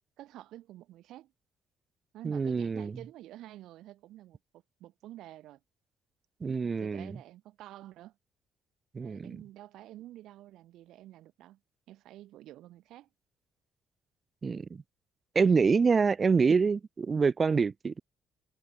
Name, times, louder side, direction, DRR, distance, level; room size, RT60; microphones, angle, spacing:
voice 1, 0.2-1.3 2.1-5.6 6.6-8.2 9.0-11.6 11.9-13.1, right 14 dB, 80° right, 1.2 m, -49 dB
voice 2, 2.2-2.9 6.4-7.2 8.9-9.4 14.4-14.8 15.4-18.0, right 5 dB, 35° right, 0.4 m, -26 dB
cardioid pair, 95°, 0 cm